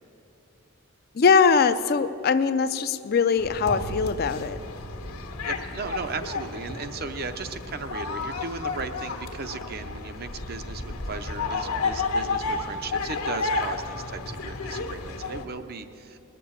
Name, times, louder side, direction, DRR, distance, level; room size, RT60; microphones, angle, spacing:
voice 1, 1.2-4.6, left 5 dB, 45° left, 12 dB, 0.4 m, -21 dB
sound 1, 3.4-15.5, left 3 dB, 90° left, 1.4 m, -32 dB
sound 2, 3.8-6.7, right 1 dB, 75° right, 1.3 m, -43 dB
voice 2, 5.4-16.2, right 4 dB, 45° right, 9 dB, 0.6 m, -36 dB
20.0 x 6.8 x 8.7 m, 2.9 s
head